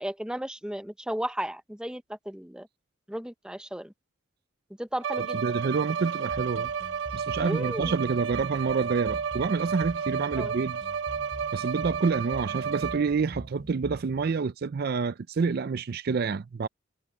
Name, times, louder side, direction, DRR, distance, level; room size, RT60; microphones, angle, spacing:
voice 1, 0.0-2.7 3.1-3.9 4.8-5.4 7.4-7.9 10.3-10.5, right 1 dB, 5° right, 0.6 m, -34 dB
Bowed string instrument, 5.0-13.3, right 7 dB, 65° right, 0.8 m, -32 dB
voice 2, 5.2-6.7 7.1-10.8 11.5-16.7, right 5 dB, 50° right, 0.4 m, -28 dB
sound 1, 6.3-14.3, equal, 35° right, 2.8 m, -44 dB
head